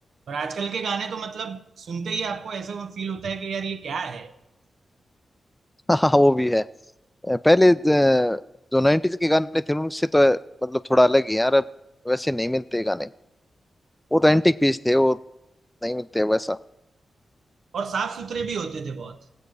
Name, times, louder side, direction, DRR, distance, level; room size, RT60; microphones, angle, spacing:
voice 1, 0.3-4.4 17.7-19.2, right 5 dB, 80° right, 0.8 m, -30 dB
voice 2, 5.9-6.6 7.2-8.4 8.7-11.6 12.1-13.1 14.1-15.2 15.8-16.6, left 1 dB, 10° left, 0.4 m, -20 dB
18.0 x 7.9 x 4.8 m
cardioid pair, 70°, 0 cm